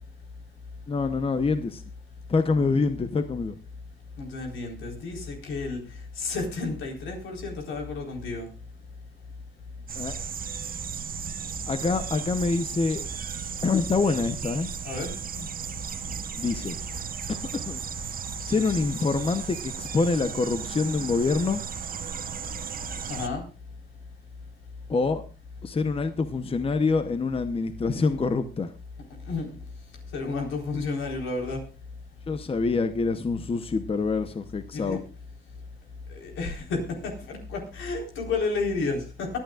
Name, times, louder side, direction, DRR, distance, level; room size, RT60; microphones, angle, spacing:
voice 1, 0.9-1.8 2.3-3.6 9.9-10.1 11.7-13.1 13.6-14.7 16.4-16.8 17.3-17.8 18.4-21.6 24.9-25.2 25.6-28.7 32.3-35.0, left 4 dB, 30° left, 10 dB, 0.9 m, -26 dB
voice 2, 4.2-5.8 6.2-8.5 14.8-15.2 23.1-23.4 29.3-29.5 30.1-31.6 34.7-35.0 36.1-39.3, left 3 dB, 85° left, 1 dB, 4.1 m, -31 dB
sound 1, 9.9-23.3, right 7 dB, 45° right, 1.0 m, -35 dB
24.5 x 9.3 x 2.4 m, 0.35 s
cardioid pair, 90°, 20 cm